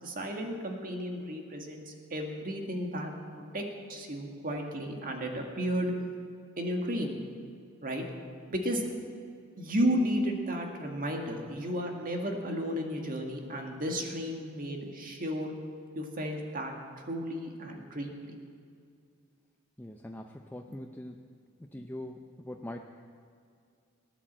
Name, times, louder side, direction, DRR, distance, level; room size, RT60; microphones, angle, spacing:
voice 1, 0.0-5.9 6.6-7.1 7.8-8.0 8.5-8.9 9.6-15.5 15.9-16.7 17.1-18.1, equal, 40° right, 2 dB, 2.0 m, -33 dB
voice 2, 19.8-21.2 21.7-22.8, left 1 dB, 10° left, 3 dB, 0.6 m, -42 dB
18.0 x 10.0 x 7.5 m, 2.2 s
head